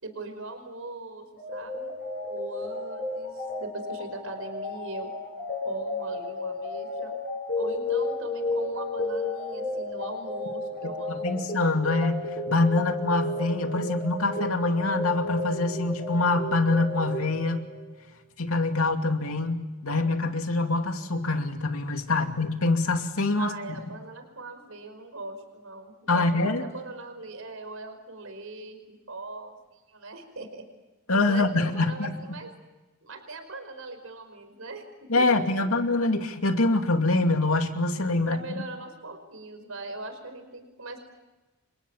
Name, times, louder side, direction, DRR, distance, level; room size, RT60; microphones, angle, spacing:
voice 1, 0.0-1.2 1.5-1.9 2.3-5.1 5.6-7.1 7.6-11.4 22.1-22.2 23.4-30.6 31.2-32.5 33.0-34.9 35.2-35.5 38.2-41.0, right 2 dB, 75° right, 7 dB, 5.2 m, -40 dB
sound 1, 1.4-18.0, left 2 dB, 45° left, 6.8 m, -33 dB
voice 2, 11.1-17.7 18.4-23.8 26.1-26.6 31.1-32.4 35.1-38.4, left 2 dB, 85° left, 5 dB, 2.6 m, -25 dB
30.0 x 26.0 x 7.3 m, 1.1 s
head